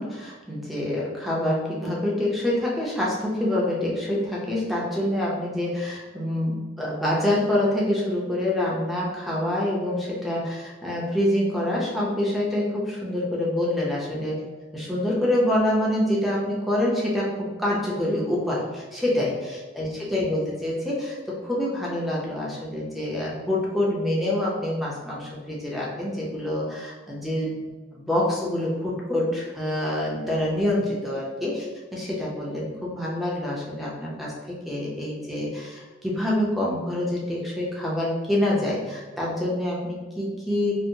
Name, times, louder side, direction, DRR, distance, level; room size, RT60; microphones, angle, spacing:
voice 1, 0.0-14.4 14.7-40.8, left 1 dB, ahead, -5 dB, 0.6 m, -26 dB
4.4 x 2.0 x 2.7 m, 1.3 s
head